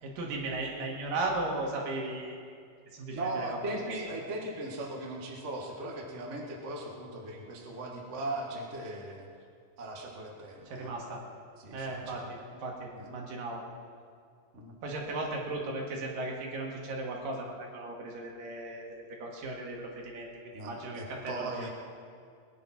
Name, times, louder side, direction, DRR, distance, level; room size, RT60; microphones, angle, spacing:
voice 1, 0.0-2.4 2.9-3.8 10.7-11.2 11.7-13.6 14.8-20.3 20.7-21.7, right 2 dB, 70° right, 0 dB, 3.5 m, -36 dB
voice 2, 3.1-9.3 9.8-10.9 11.6-12.2 12.9-13.2 14.5-14.7 20.5-21.7, right 2 dB, 35° right, 0 dB, 1.1 m, -38 dB
19.5 x 10.0 x 5.9 m, 2.3 s
omnidirectional pair, 4.2 m